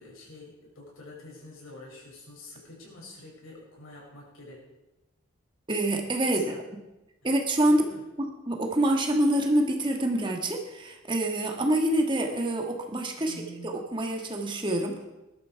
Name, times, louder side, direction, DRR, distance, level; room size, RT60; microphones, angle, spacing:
voice 1, 0.0-4.6 6.3-6.6 7.2-7.3 7.7-8.0 13.2-13.7, left 1 dB, 85° left, -3 dB, 6.6 m, -47 dB
voice 2, 5.7-6.6 7.2-7.8 8.2-13.3 13.6-15.0, right 1 dB, 25° right, 2 dB, 1.6 m, -26 dB
20.5 x 12.0 x 4.7 m, 0.99 s
head